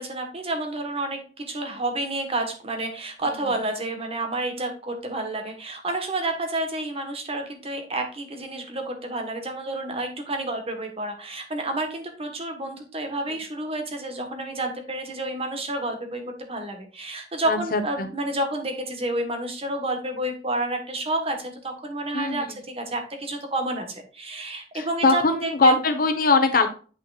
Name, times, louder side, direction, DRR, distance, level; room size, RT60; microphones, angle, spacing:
voice 1, 0.0-25.8, right 1 dB, 35° right, 5 dB, 1.3 m, -30 dB
voice 2, 17.5-18.1 22.1-22.5 24.7-26.7, left 3 dB, 55° left, 7 dB, 1.1 m, -21 dB
8.5 x 5.7 x 2.4 m, 0.37 s
head